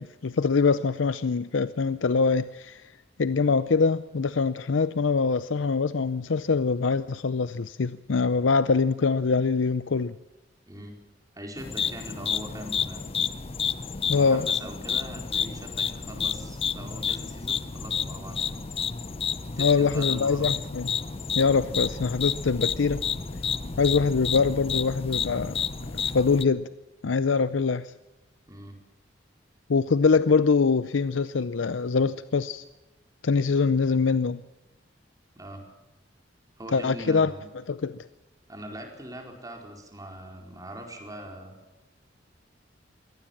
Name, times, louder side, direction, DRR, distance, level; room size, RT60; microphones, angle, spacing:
voice 1, 0.0-2.9 3.2-10.2 14.1-14.5 19.6-20.9 21.4-23.0 23.8-25.6 26.0-26.7 27.0-27.9 29.7-32.6 33.2-34.4 36.7-37.3 37.7-38.0, left 4 dB, 85° left, 14 dB, 0.6 m, -24 dB
voice 2, 10.7-11.0 11.3-13.0 14.1-18.6 19.6-20.5 28.5-28.8 35.4-35.7 36.6-37.5 38.5-41.6, equal, 20° right, 2 dB, 4.5 m, -41 dB
sound 1, 11.6-26.4, left 6 dB, 30° left, 0.7 m, -30 dB
22.5 x 17.5 x 7.4 m, 1.1 s
head